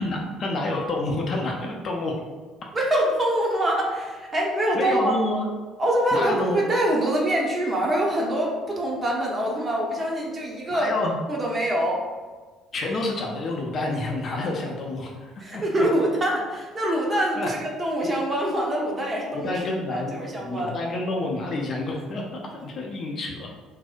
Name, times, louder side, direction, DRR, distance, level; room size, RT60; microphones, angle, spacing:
voice 1, 0.0-2.1 4.7-5.5 6.1-6.6 10.7-11.2 12.7-15.9 17.4-17.5 19.3-23.5, left 2 dB, 40° left, -1 dB, 0.4 m, -28 dB
voice 2, 2.7-5.2 5.8-10.9 11.3-12.1 15.4-19.6 19.9-20.7, right 1 dB, 25° right, -2 dB, 0.6 m, -24 dB
2.6 x 2.0 x 2.4 m, 1.4 s
figure-of-eight pair, 50°, 0 cm